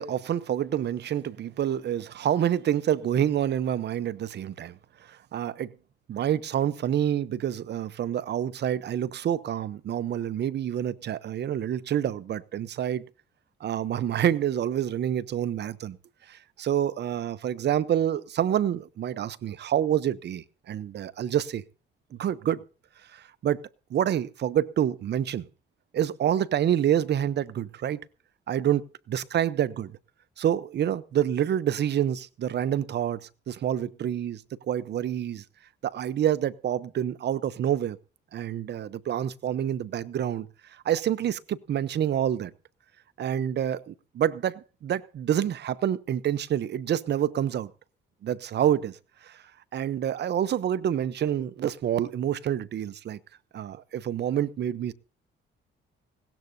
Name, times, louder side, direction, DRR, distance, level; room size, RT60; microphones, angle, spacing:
voice 1, 0.0-4.8 5.1-5.7 6.1-13.0 13.6-16.0 16.3-21.6 22.1-22.6 23.1-23.6 23.9-25.5 25.9-28.0 28.5-29.9 30.4-34.4 34.7-35.4 35.8-38.0 38.3-40.5 40.8-42.5 43.2-47.7 48.2-49.0 49.2-49.4 49.7-53.2 53.5-54.9, right 10 dB, 60° right, 0.8 m, -27 dB
20.0 x 17.0 x 2.7 m
cardioid pair, 90°, 20 cm